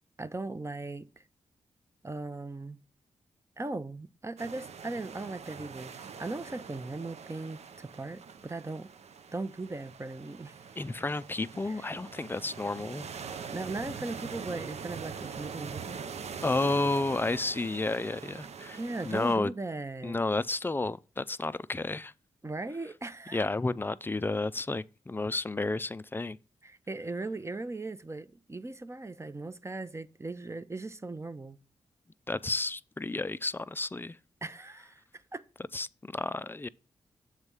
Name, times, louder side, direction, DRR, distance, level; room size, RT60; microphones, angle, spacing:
voice 1, 0.2-1.2 2.0-2.8 3.6-8.9 9.3-10.5 11.7-11.8 13.5-16.0 18.7-20.2 22.4-23.4 26.6-31.6 34.4-35.4, right 2 dB, 20° right, 0.7 m, -38 dB
sound 1, 4.4-19.4, right 6 dB, 60° right, 0.5 m, -43 dB
voice 2, 10.8-13.1 16.4-18.8 19.0-19.5 20.0-22.1 23.3-26.4 32.3-34.2 35.7-36.7, left 2 dB, 15° left, 0.4 m, -31 dB
7.3 x 3.2 x 5.4 m
supercardioid pair, 40°, 13 cm